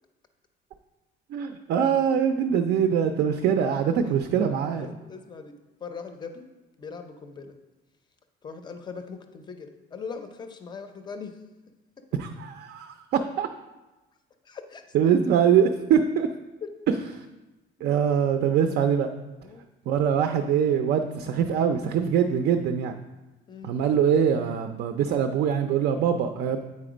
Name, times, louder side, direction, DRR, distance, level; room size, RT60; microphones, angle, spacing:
voice 1, 1.3-4.9 12.2-13.5 14.9-16.3 17.8-19.1 19.9-22.9 23.6-26.6, right 8 dB, 55° right, 7 dB, 0.4 m, -23 dB
voice 2, 4.7-5.6 5.8-6.4 6.8-7.6 8.4-11.4 14.4-14.9 16.6-16.7 17.8-18.0 19.4-19.6 23.5-23.7, left 5 dB, 20° left, 7 dB, 0.5 m, -40 dB
8.4 x 4.2 x 4.9 m, 1.1 s
cardioid pair, 180°, 20 cm